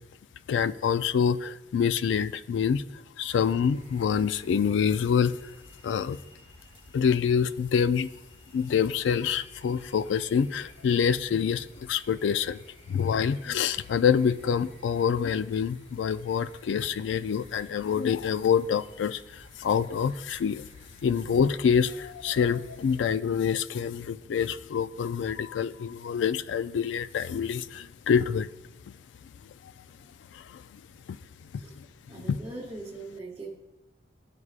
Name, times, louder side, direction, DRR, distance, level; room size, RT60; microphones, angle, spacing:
voice 1, 0.5-2.8 3.2-5.4 5.8-6.2 6.9-8.1 8.5-12.6 12.9-20.6 21.0-28.5 30.3-30.6 31.1-31.2 31.8-31.9, left 7 dB, 80° left, 15 dB, 0.3 m, -26 dB
sound 1, 3.3-23.0, left 1 dB, 30° left, 1.6 m, -54 dB
voice 2, 32.1-33.6, right 2 dB, 20° right, -4 dB, 0.8 m, -40 dB
13.5 x 4.8 x 2.4 m, 1.0 s
head